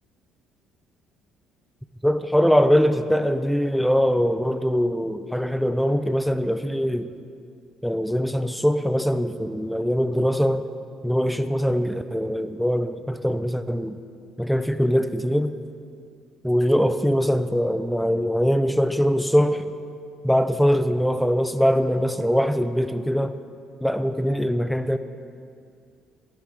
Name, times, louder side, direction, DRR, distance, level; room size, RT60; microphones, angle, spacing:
voice 1, 2.0-7.1 7.8-10.7 11.0-14.0 14.4-15.5 16.4-19.7 20.2-23.3 23.8-25.0, equal, ahead, 10 dB, 0.4 m, -22 dB
11.5 x 4.8 x 4.6 m, 2.3 s
hypercardioid pair, 60°, 0 cm